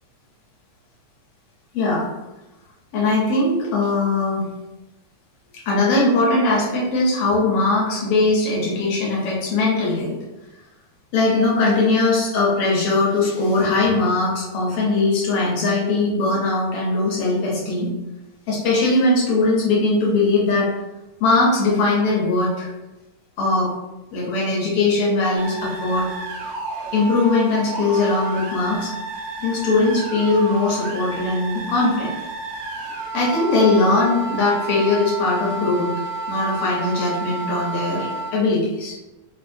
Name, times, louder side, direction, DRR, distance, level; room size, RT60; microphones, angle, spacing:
voice 1, 1.7-2.1 2.9-4.4 5.6-10.2 11.1-17.9 18.5-20.7 21.2-22.7 23.4-23.7 24.1-26.1 26.9-28.9 29.4-32.1 33.1-35.9 36.3-39.0, left 3 dB, 65° left, -4 dB, 1.5 m, -20 dB
sound 1, 25.3-38.3, right 3 dB, 80° right, 1.4 m, -31 dB
4.6 x 2.4 x 2.6 m, 1.0 s
omnidirectional pair, 3.3 m